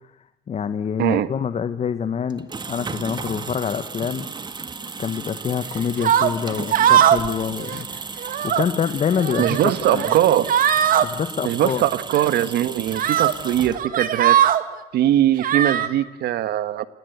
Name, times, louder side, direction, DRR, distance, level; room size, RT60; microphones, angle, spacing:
voice 1, 0.5-4.3 5.0-7.9 8.4-10.2 11.0-11.8, left 7 dB, 40° left, 10 dB, 1.4 m, -26 dB
voice 2, 1.0-1.3 9.4-10.5 11.4-14.4 14.9-16.8, right 12 dB, 70° right, 14 dB, 1.5 m, -21 dB
sound 1, 2.3-14.1, right 4 dB, 25° right, 1.7 m, -35 dB
sound 2, 6.0-6.3 6.7-7.3 7.6-7.8 8.2-8.6 9.2-9.6 10.0-10.2 10.5-11.1 12.1-12.3 12.9-13.3 13.7-14.6 15.4-15.9, right 10 dB, 55° right, 2.1 m, -19 dB
28.5 x 19.0 x 8.2 m, 1.0 s
cardioid pair, 110°, 17 cm